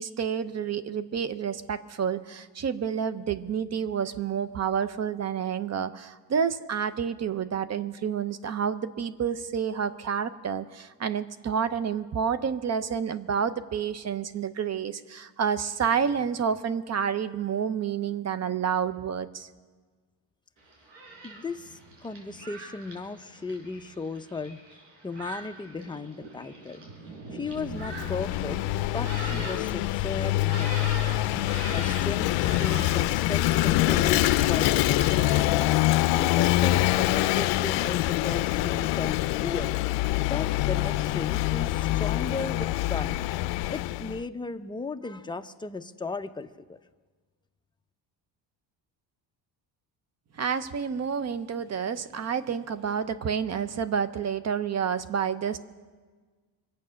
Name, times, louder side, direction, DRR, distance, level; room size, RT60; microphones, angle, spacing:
voice 1, 0.0-19.5 50.3-55.6, right 7 dB, 35° right, 13 dB, 0.8 m, -29 dB
Thunderstorm, 20.6-35.4, right 3 dB, 75° right, 4.9 m, -42 dB
voice 2, 21.2-24.6 25.0-26.8 27.3-28.6 28.9-31.1 31.7-35.7 36.2-39.8 40.3-43.3 43.7-46.8, left 4 dB, 10° left, 7 dB, 0.5 m, -36 dB
Vehicle / Engine, 27.6-44.2, left 16 dB, 75° left, 0.5 m, -25 dB
24.5 x 8.3 x 6.4 m, 1.4 s
cardioid pair, 110°, 44 cm